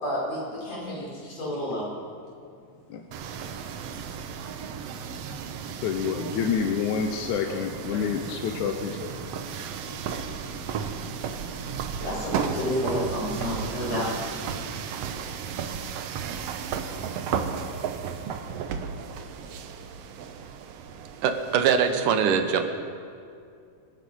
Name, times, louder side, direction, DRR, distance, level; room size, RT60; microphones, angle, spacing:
voice 1, 0.0-1.9 6.4-6.7 7.3-8.2 8.6-9.7 10.1-10.6 10.9-11.1 11.7-14.2 14.5-14.6, equal, 55° left, -6 dB, 6.1 m, -32 dB
sound 1, 3.1-21.9, right 7 dB, 70° right, 1.7 m, -34 dB
voice 2, 5.8-8.9, left 7 dB, 75° left, 4 dB, 2.1 m, -28 dB
voice 3, 21.2-22.6, right 7 dB, 85° right, 7 dB, 2.7 m, -22 dB
25.5 x 9.8 x 5.5 m, 2.4 s
omnidirectional pair, 3.6 m